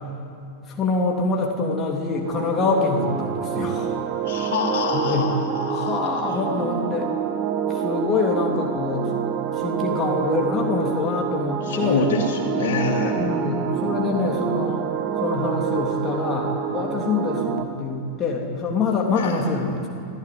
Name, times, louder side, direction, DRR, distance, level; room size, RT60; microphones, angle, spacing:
voice 1, 0.7-4.0 4.3-4.6 4.9-5.3 5.7-7.1 7.7-9.1 9.5-12.1 13.1-14.8 15.2-19.9, left 4 dB, 25° left, -1 dB, 3.3 m, -25 dB
sound 1, 2.2-17.6, right 9 dB, 40° right, 1.9 m, -27 dB
voice 2, 4.2-6.0 11.7-13.3 19.2-19.4, left 4 dB, 55° left, 1 dB, 3.7 m, -25 dB
24.5 x 16.0 x 9.6 m, 2.5 s
figure-of-eight pair, 90°, 0 cm